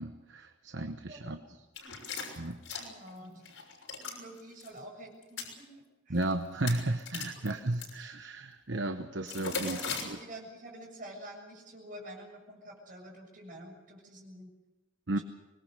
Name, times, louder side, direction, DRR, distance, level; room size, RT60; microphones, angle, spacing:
voice 1, 0.0-1.4 2.4-2.6 6.1-10.2 15.1-15.2, right 2 dB, 65° right, 7 dB, 1.1 m, -34 dB
voice 2, 1.1-1.5 1.8-2.0 2.3-2.4 2.8-3.6 4.0-6.2 7.3-7.4 9.7-14.5 15.2-15.3, right 1 dB, 45° right, 0 dB, 7.3 m, -48 dB
sound 1, 1.8-3.1 3.4-4.2 4.5-4.7 5.2-5.5 6.2-6.3 6.6-7.9 9.2-10.0, left 5 dB, 90° left, 6.3 m, -37 dB
25.0 x 20.5 x 6.7 m, 1.1 s
head